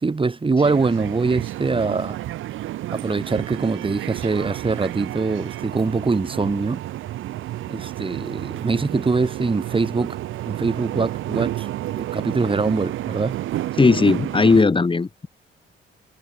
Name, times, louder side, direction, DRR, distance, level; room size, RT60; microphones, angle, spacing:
voice 1, 0.0-2.2 2.9-6.8 7.7-10.2 10.5-11.7 12.0-13.4, right 4 dB, 25° right, 4.0 m, -23 dB
sound 1, 0.6-14.6, right 14 dB, 85° right, 5.0 m, -31 dB
voice 2, 13.8-15.3, left 4 dB, 25° left, 2.6 m, -17 dB
cardioid pair, 90°, 20 cm